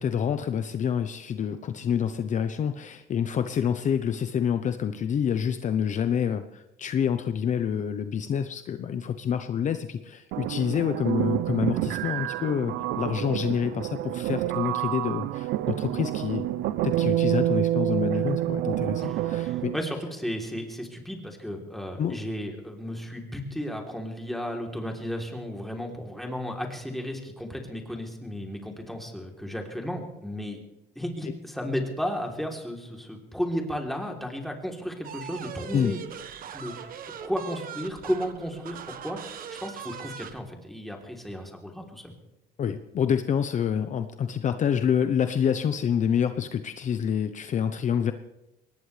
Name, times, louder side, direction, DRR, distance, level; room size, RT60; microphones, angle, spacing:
voice 1, 0.0-16.5 16.8-19.7 22.0-22.2 35.7-36.0 42.6-48.1, left 8 dB, 45° left, 9 dB, 0.8 m, -27 dB
sound 1, 10.3-19.8, right 14 dB, 80° right, 0.6 m, -28 dB
voice 2, 19.0-30.6 30.9-36.1 36.5-36.7 37.2-42.1, equal, ahead, 1 dB, 3.4 m, -34 dB
sound 2, 35.0-40.4, right 8 dB, 55° right, 1.4 m, -40 dB
22.0 x 19.0 x 3.4 m, 0.96 s
cardioid pair, 110°, 17 cm